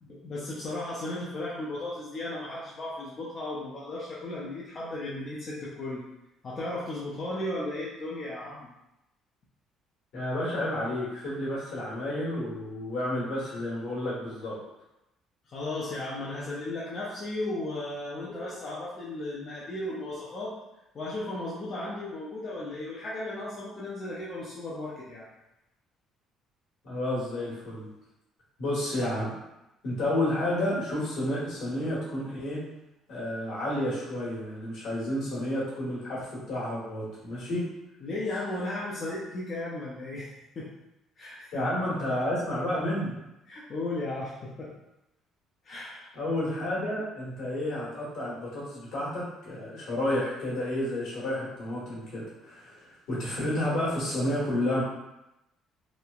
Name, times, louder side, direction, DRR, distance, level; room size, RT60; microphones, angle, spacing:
voice 1, 0.0-6.0 6.4-8.7 15.5-20.5 20.9-25.3 38.0-40.7 41.2-41.6 43.5-44.7 45.6-46.1, left 2 dB, 30° left, -7 dB, 0.4 m, -35 dB
voice 2, 10.1-14.5 26.8-27.9 28.6-29.3 29.8-32.6 33.1-37.6 41.5-43.1 46.1-54.8, left 1 dB, 70° left, -7 dB, 1.2 m, -31 dB
2.9 x 2.1 x 2.3 m, 0.92 s
cardioid pair, 155°, 0 cm